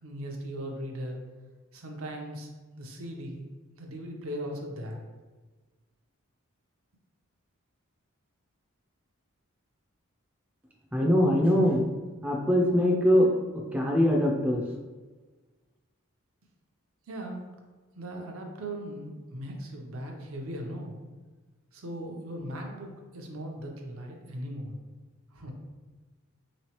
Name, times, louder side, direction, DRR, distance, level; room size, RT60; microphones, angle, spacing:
voice 1, 0.0-1.2 1.7-2.5 2.8-3.4 3.8-5.0 17.1-17.4 17.9-21.0 21.7-24.7 25.3-25.5, right 1 dB, 75° right, 2 dB, 0.7 m, -38 dB
voice 2, 10.9-11.8 12.2-14.6, equal, 5° right, -1 dB, 0.3 m, -23 dB
3.7 x 3.1 x 2.9 m, 1.3 s
head